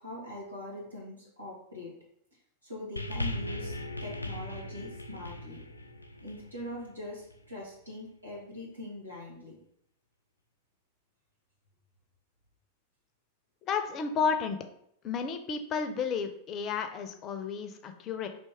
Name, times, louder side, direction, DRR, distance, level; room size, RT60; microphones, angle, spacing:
voice 1, 0.0-1.9 2.6-3.7 4.0-5.6 6.2-9.6, left 1 dB, 85° right, -5 dB, 1.7 m, -42 dB
sound 1, 3.0-7.5 8.3-8.4, left 1 dB, 85° left, 0.3 m, -38 dB
voice 2, 13.6-14.6 15.0-18.3, left 6 dB, 30° left, 7 dB, 0.5 m, -32 dB
3.4 x 3.0 x 4.3 m, 0.70 s
figure-of-eight pair, 90°, 0 cm